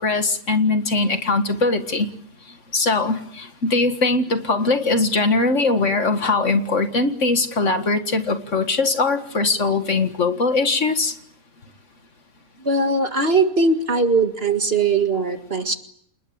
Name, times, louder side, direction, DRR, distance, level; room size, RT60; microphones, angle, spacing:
voice 1, 0.0-2.1 2.7-11.1, left 3 dB, 55° left, 8 dB, 2.1 m, -21 dB
voice 2, 12.6-15.8, right 3 dB, 40° right, 6 dB, 2.2 m, -20 dB
28.5 x 21.0 x 8.6 m, 0.67 s
omnidirectional pair, 1.6 m